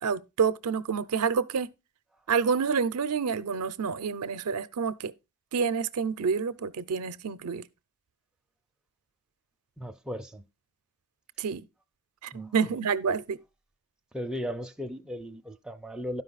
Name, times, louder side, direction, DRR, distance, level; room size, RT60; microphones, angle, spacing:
voice 1, 0.0-1.7 2.3-5.1 5.5-7.7 11.4-11.7 12.2-13.4, right 6 dB, 75° right, 0.5 m, -28 dB
voice 2, 9.8-10.5 12.3-12.8 14.1-16.2, equal, 5° right, 0.4 m, -37 dB
12.0 x 5.2 x 4.0 m
head